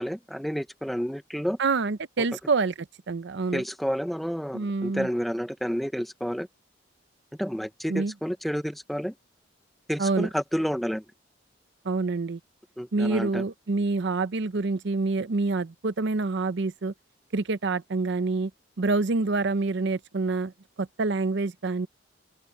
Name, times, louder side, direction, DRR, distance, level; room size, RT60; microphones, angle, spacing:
voice 1, 0.0-1.6 3.5-6.5 7.4-9.1 9.9-11.0 12.8-13.4, equal, ahead, 0.9 m, -30 dB
voice 2, 1.6-3.6 4.5-5.1 7.9-8.1 10.0-10.3 11.8-12.4 12.9-16.9 17.3-18.5 18.8-20.5 20.8-21.9, right 3 dB, 65° right, 0.6 m, -27 dB
open air
head